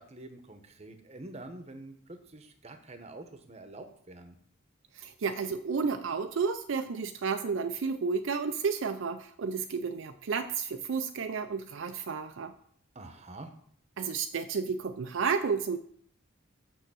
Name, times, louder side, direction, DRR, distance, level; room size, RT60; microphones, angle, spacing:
voice 1, 0.0-4.4 12.9-13.5, right 2 dB, 30° right, 7 dB, 1.0 m, -46 dB
voice 2, 4.9-12.5 14.0-15.8, right 5 dB, 65° right, 7 dB, 0.4 m, -31 dB
6.6 x 6.3 x 6.2 m, 0.62 s
head